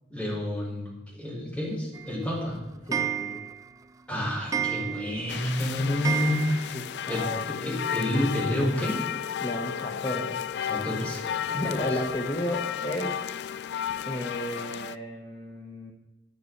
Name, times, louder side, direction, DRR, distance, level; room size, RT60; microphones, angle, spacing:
voice 1, 0.1-2.6 4.1-6.5 7.1-9.0 10.7-11.9, left 1 dB, 5° left, -4 dB, 4.9 m, -29 dB
Clock, 1.9-7.0 7.3-7.4 7.7-7.8 8.0-8.1 9.3-9.4 9.9-10.0 10.5-10.6 11.2-11.3 11.8-11.9 12.5-12.6, right 8 dB, 20° right, 0.4 m, -33 dB
voice 2, 2.8-3.4 6.7-7.5 9.4-10.4 11.5-13.2 14.0-15.9, equal, 25° left, 0 dB, 1.2 m, -33 dB
sound 1, 5.3-15.0, left 9 dB, 70° left, 0.3 m, -33 dB
11.5 x 10.5 x 5.5 m, 0.97 s
head